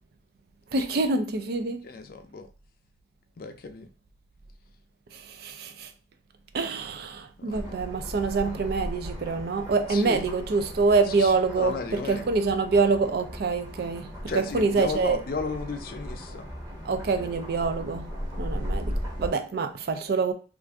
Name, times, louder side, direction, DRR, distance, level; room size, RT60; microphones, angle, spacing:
voice 1, 0.7-1.9 5.1-5.9 6.5-14.1 14.5-15.2 16.9-18.1 18.4-20.3, right 4 dB, 60° right, 0.4 m, -26 dB
voice 2, 1.8-2.5 3.4-3.9 7.4-7.8 9.9-10.2 11.1-12.3 14.3-16.5 17.1-17.4, left 4 dB, 55° left, 0.4 m, -34 dB
sound 1, 7.5-19.3, equal, 20° right, 1.1 m, -37 dB
2.5 x 2.5 x 3.4 m
head